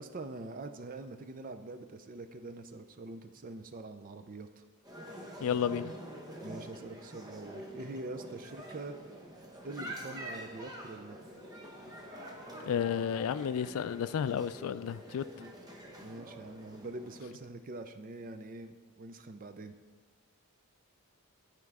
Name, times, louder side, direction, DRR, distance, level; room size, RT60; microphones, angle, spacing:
voice 1, 0.0-4.6 6.4-9.0 9.6-11.2 15.3-15.5 16.0-19.8, right 2 dB, 40° right, 0.5 m, -44 dB
sound 1, 4.8-17.2, equal, 15° right, 0.9 m, -46 dB
voice 2, 5.4-5.9 12.7-15.2, left 8 dB, 70° left, 0.3 m, -32 dB
11.0 x 4.5 x 4.8 m
head